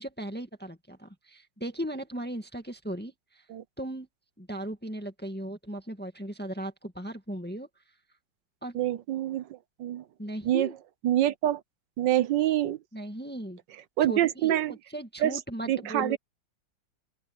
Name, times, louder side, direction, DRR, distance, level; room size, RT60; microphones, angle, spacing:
voice 1, 0.0-3.5 3.8-4.1 4.4-7.7 8.6-8.8 10.2-10.7 12.9-13.6 14.0-16.2, right 1 dB, 5° left, 1.7 m, -37 dB
voice 2, 8.7-9.5 9.8-10.0 10.4-10.7 11.0-11.6 12.0-12.8 14.0-14.7 15.2-15.4 15.7-16.2, right 13 dB, 70° right, 1.5 m, -26 dB
open air
omnidirectional pair, 2.1 m